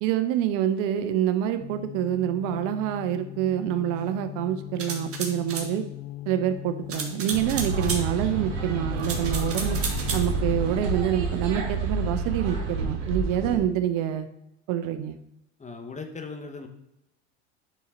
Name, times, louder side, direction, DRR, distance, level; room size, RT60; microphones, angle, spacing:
voice 1, 0.0-5.8 6.3-9.8 10.1-14.3 14.7-15.2, right 10 dB, 60° right, 9 dB, 0.7 m, -26 dB
sound 1, 1.6-11.0, left 15 dB, 50° left, 0.5 m, -39 dB
sound 2, 4.8-5.7 6.9-8.0 9.0-10.3, right 5 dB, 40° right, 1.6 m, -32 dB
sound 3, 7.3-13.6, right 3 dB, 85° right, 1.6 m, -29 dB
voice 2, 15.6-16.7, left 4 dB, 20° left, 5 dB, 1.1 m, -38 dB
9.3 x 4.2 x 3.8 m, 0.86 s
hypercardioid pair, 90°, 36 cm